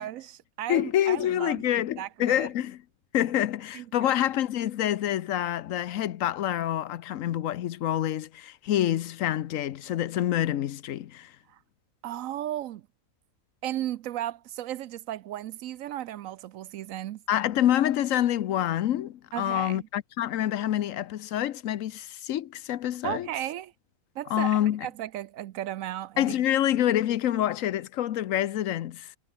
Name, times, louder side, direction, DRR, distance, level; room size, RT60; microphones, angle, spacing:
voice 1, 0.0-2.5 3.7-4.1 11.5-11.6 12.0-12.8 13.6-17.2 19.3-19.9 23.0-23.7 24.2-26.3, right 12 dB, 80° right, 1.0 m, -35 dB
voice 2, 0.7-2.8 3.1-11.3 17.3-23.3 24.3-24.9 26.2-29.2, left 12 dB, 75° left, 1.1 m, -27 dB
omnidirectional pair, 1.4 m